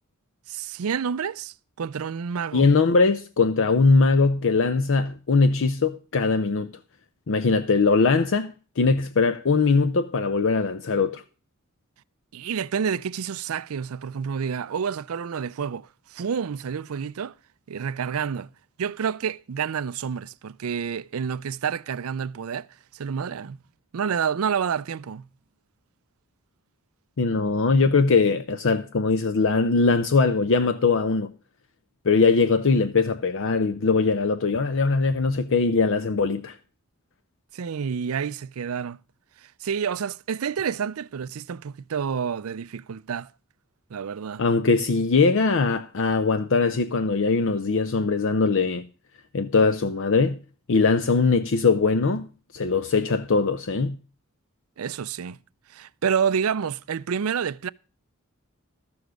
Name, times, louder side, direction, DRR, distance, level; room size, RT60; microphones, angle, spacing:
voice 1, 0.5-2.7 12.3-17.3 17.7-18.5 18.8-22.7 22.9-23.6 23.9-25.3 37.5-39.0 39.4-43.3 43.9-44.4 54.8-55.4 55.7-57.7, right 7 dB, 85° right, 0.5 m, -29 dB
voice 2, 2.5-6.7 7.3-11.2 27.2-31.3 32.0-36.6 44.4-48.8 49.3-50.4 50.7-52.3 52.5-54.0, left 4 dB, 65° left, 0.6 m, -21 dB
13.0 x 7.1 x 6.2 m
head